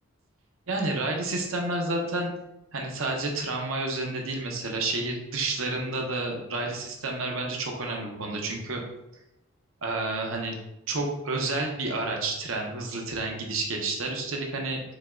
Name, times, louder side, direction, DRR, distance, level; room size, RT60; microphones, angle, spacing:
voice 1, 0.7-2.3 2.7-8.8 9.8-10.5 10.9-14.8, right 2 dB, 75° right, 1 dB, 0.8 m, -30 dB
5.3 x 2.3 x 3.6 m, 0.88 s
head